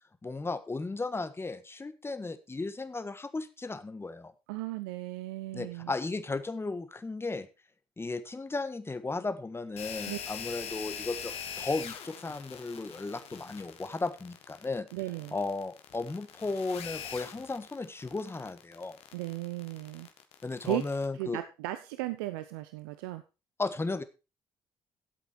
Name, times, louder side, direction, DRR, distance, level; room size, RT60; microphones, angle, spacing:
voice 1, 0.2-4.3 5.5-7.5 8.0-14.9 15.3-19.0 20.4-21.4 23.6-24.0, left 3 dB, 20° left, 11 dB, 1.4 m, -35 dB
voice 2, 4.5-5.9 10.1-10.2 14.9-15.4 19.1-20.1 20.6-20.8 21.2-23.2, right 18 dB, 80° right, 11 dB, 0.6 m, -36 dB
sound 1, 9.8-21.1, left 8 dB, 60° left, 1.6 m, -43 dB
12.0 x 8.2 x 4.5 m, 0.30 s
hypercardioid pair, 50°, 12 cm